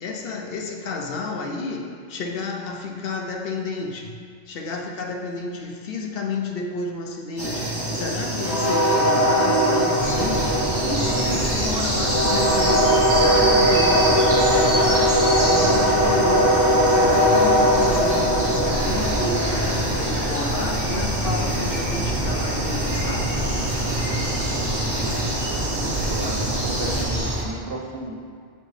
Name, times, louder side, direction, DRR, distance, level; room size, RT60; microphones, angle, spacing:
voice 1, 0.0-4.2 4.5-23.3, left 3 dB, 65° left, 2 dB, 0.8 m, -31 dB
sound 1, 7.4-27.0, equal, 25° right, 1.0 m, -21 dB
sound 2, 10.0-27.4, right 1 dB, 45° right, 1.4 m, -27 dB
voice 2, 25.6-28.1, right 2 dB, 65° right, -2 dB, 1.1 m, -34 dB
7.4 x 4.4 x 3.2 m, 2.2 s
omnidirectional pair, 1.1 m